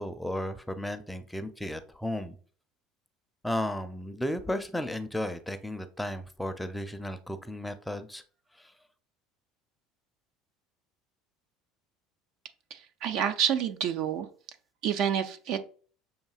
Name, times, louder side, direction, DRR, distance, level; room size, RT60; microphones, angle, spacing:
voice 1, 0.0-2.4 3.4-8.2 8.6-8.7, left 1 dB, 5° left, 9 dB, 0.5 m, -34 dB
voice 2, 12.7-14.3 14.8-15.6, right 9 dB, 65° right, 8 dB, 0.5 m, -28 dB
6.4 x 2.7 x 2.4 m, 0.42 s
hypercardioid pair, 80°, 0 cm